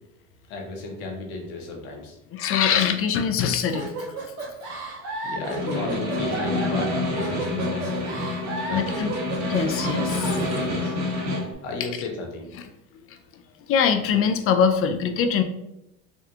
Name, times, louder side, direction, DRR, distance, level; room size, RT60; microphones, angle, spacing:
voice 1, 0.5-2.2 5.2-8.2 8.6-9.0 10.4-11.0 11.6-12.5, left 2 dB, 80° left, 1 dB, 0.9 m, -34 dB
voice 2, 2.3-3.9 8.7-9.1 9.4-10.5 11.8-11.9 13.1-13.2 13.7-15.4, left 7 dB, 40° left, 7 dB, 0.4 m, -23 dB
sound 1, 3.7-10.5, right 2 dB, 80° right, 1.0 m, -33 dB
Snare drum, 5.4-11.5, left 2 dB, 45° right, 1.4 m, -28 dB
3.6 x 2.3 x 2.7 m, 0.85 s
supercardioid pair, 90°, 35 cm